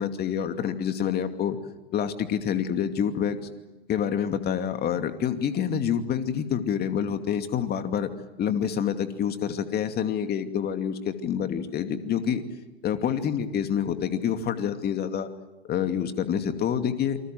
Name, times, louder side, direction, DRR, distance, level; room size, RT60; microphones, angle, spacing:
voice 1, 0.0-1.6 1.9-3.4 3.9-8.1 8.4-12.4 12.8-15.3 15.7-17.2, left 8 dB, 30° left, 7 dB, 2.6 m, -27 dB
28.5 x 25.0 x 7.8 m, 1.1 s
hypercardioid pair, 105°, 33 cm